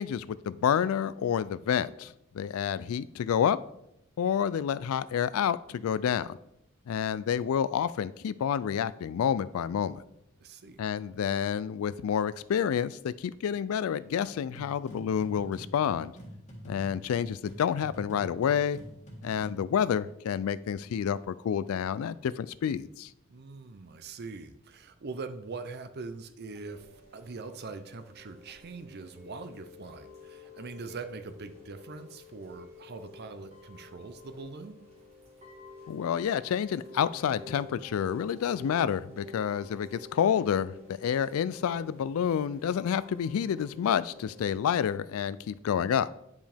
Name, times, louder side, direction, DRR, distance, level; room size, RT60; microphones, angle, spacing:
voice 1, 0.0-3.6 4.2-6.4 6.9-10.0 10.8-16.1 16.7-18.8 19.2-23.1 35.9-40.7 41.0-46.1, left 8 dB, 70° left, 17 dB, 0.3 m, -29 dB
voice 2, 10.4-10.8 23.3-26.9 27.1-34.8, right 4 dB, 45° right, 10 dB, 0.6 m, -42 dB
sound 1, 14.5-19.7, equal, 30° left, 1.6 m, -46 dB
Chime / Rain, 26.5-44.9, left 2 dB, 30° right, 1.6 m, -51 dB
9.3 x 5.1 x 3.4 m, 0.79 s
head